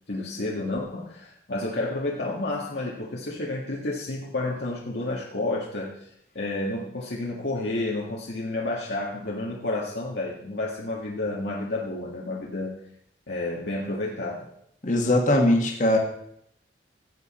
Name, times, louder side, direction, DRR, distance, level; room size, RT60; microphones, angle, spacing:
voice 1, 0.1-6.1 6.3-12.8 13.3-14.5, left 2 dB, 70° left, -4 dB, 1.7 m, -30 dB
voice 2, 14.8-16.0, left 1 dB, 45° left, 2 dB, 1.7 m, -20 dB
15.5 x 8.1 x 4.3 m, 0.72 s
head